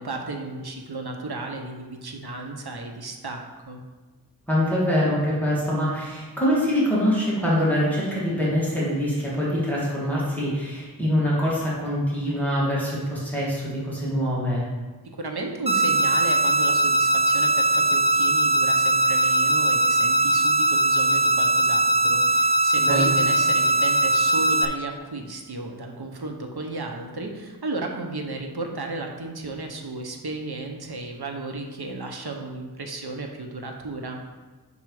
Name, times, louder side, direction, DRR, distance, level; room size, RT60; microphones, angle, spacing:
voice 1, 0.0-3.8 15.0-34.2, right 2 dB, 75° right, 3 dB, 0.9 m, -34 dB
voice 2, 4.5-14.6 22.8-23.1, equal, 5° left, -8 dB, 2.2 m, -24 dB
sound 1, 15.7-24.7, right 2 dB, 15° right, 0.5 m, -20 dB
5.6 x 4.7 x 4.8 m, 1.3 s
wide cardioid pair, 50°, 39 cm